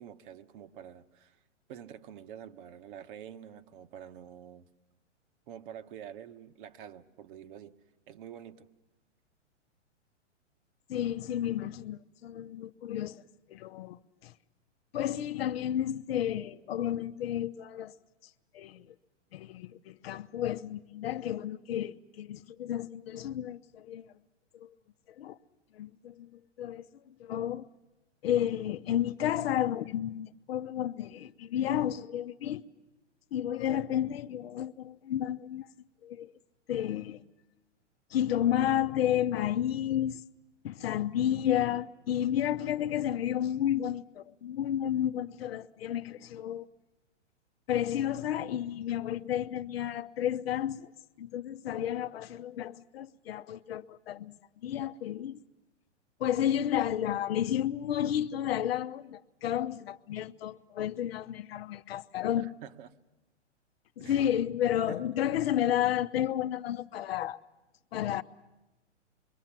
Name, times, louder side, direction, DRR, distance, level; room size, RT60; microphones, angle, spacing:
voice 1, 0.0-1.4 1.7-4.7 5.5-7.8 8.1-8.7 62.4-62.9 64.0-64.3 64.9-65.1, right 9 dB, 45° right, 1.1 m, -47 dB
voice 2, 10.9-13.2 13.5-14.3 14.9-17.9 18.5-18.9 19.3-24.1 24.5-24.7 25.2-25.4 25.7-26.3 26.6-26.9 27.2-27.7 28.2-32.6 33.3-35.7 36.0-36.3 36.7-37.2 38.1-40.2 40.6-46.7 47.7-50.9 51.2-54.3 54.6-55.4 56.2-62.5 64.0-67.4 67.9-68.2, left 11 dB, 55° left, 0.8 m, -31 dB
26.0 x 23.0 x 7.5 m
hypercardioid pair, 125°, 36 cm